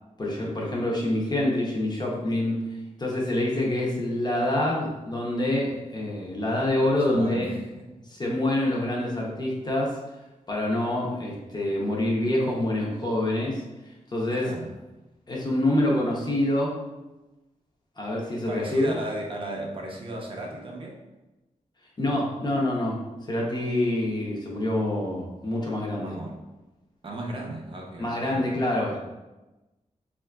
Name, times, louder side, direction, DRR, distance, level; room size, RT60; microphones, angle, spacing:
voice 1, 0.2-2.6 3.0-7.5 8.1-10.0 10.5-13.6 14.1-14.5 15.3-16.8 18.0-18.9 22.0-23.0 23.3-26.1 28.0-29.0, left 1 dB, 35° left, -3 dB, 0.6 m, -26 dB
voice 2, 7.1-7.7 8.0-8.1 14.3-14.7 18.5-21.0 26.0-26.4 27.0-28.4, right 1 dB, 40° right, -1 dB, 0.5 m, -35 dB
3.6 x 2.4 x 2.2 m, 1.0 s
wide cardioid pair, 130°, 13 cm